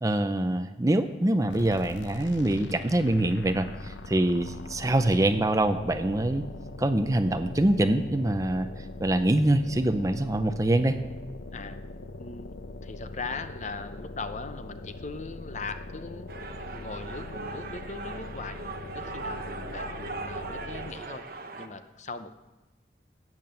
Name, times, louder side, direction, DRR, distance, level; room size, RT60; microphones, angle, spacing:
voice 1, 0.0-6.5 6.8-8.7 9.0-11.0, right 1 dB, 20° right, 10 dB, 0.5 m, -24 dB
sound 1, 1.5-21.1, left 2 dB, 85° left, 0.7 m, -42 dB
voice 2, 12.2-12.6 12.8-16.3 16.7-18.6 18.9-21.2 21.6-22.4, left 4 dB, 40° left, 10 dB, 0.7 m, -39 dB
sound 2, 16.3-21.7, right 3 dB, 55° right, 1.0 m, -39 dB
12.5 x 8.8 x 7.6 m, 1.1 s
head